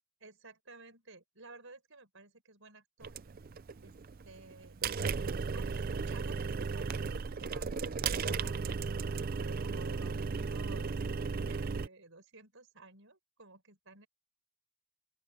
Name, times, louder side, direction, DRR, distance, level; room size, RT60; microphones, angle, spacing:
voice 1, 0.2-3.2 3.8-4.0 4.2-4.8 5.5-14.1, right 3 dB, 60° right, 5.0 m, -54 dB
sound 1, 3.0-11.9, right 5 dB, 40° right, 0.4 m, -35 dB
open air
head